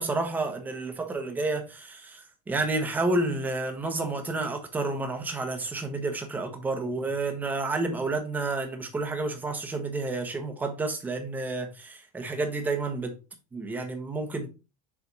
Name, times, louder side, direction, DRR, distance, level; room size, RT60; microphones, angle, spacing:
voice 1, 0.0-13.2 13.5-14.5, right 2 dB, 10° right, 1.0 m, -30 dB
7.0 x 3.4 x 4.0 m
cardioid pair, 180°, 19 cm